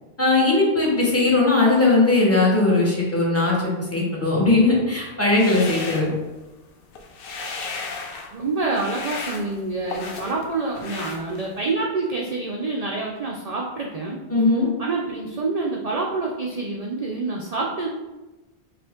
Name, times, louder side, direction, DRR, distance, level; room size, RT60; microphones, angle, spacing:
voice 1, 0.2-6.1 14.3-14.7, left 2 dB, 15° left, -4 dB, 1.0 m, -19 dB
sound 1, 5.2-6.6 6.9-8.3 8.7-10.4 10.8-11.7, left 4 dB, 65° left, 0.7 m, -34 dB
voice 2, 8.3-14.2 14.8-17.9, right 3 dB, 50° right, -1 dB, 0.4 m, -27 dB
5.2 x 2.5 x 3.6 m, 1.1 s
omnidirectional pair, 1.1 m